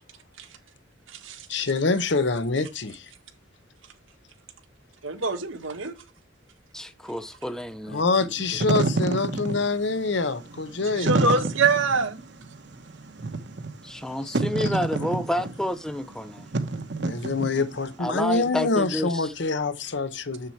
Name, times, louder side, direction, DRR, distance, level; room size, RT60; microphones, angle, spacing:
voice 1, 1.5-3.1 7.9-11.2 14.2-14.4 17.0-20.5, left 3 dB, 65° left, 0.8 m, -26 dB
voice 2, 5.0-5.9 11.0-12.1, right 4 dB, 85° right, 1.7 m, -24 dB
voice 3, 6.7-8.3 13.8-16.5 18.0-19.3, equal, 5° left, 0.5 m, -30 dB
Wind / Fire, 8.4-17.9, right 3 dB, 60° right, 1.0 m, -29 dB
7.2 x 6.7 x 4.5 m
head